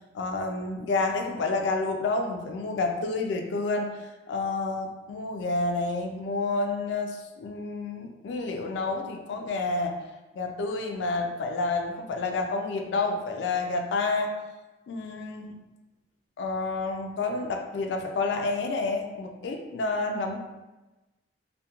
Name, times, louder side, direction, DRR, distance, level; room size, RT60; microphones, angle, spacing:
voice 1, 0.1-3.9 4.3-10.0 10.3-14.3 14.9-15.6 16.4-20.4, left 3 dB, 70° left, 3 dB, 0.3 m, -29 dB
2.3 x 2.1 x 2.8 m, 1.1 s
head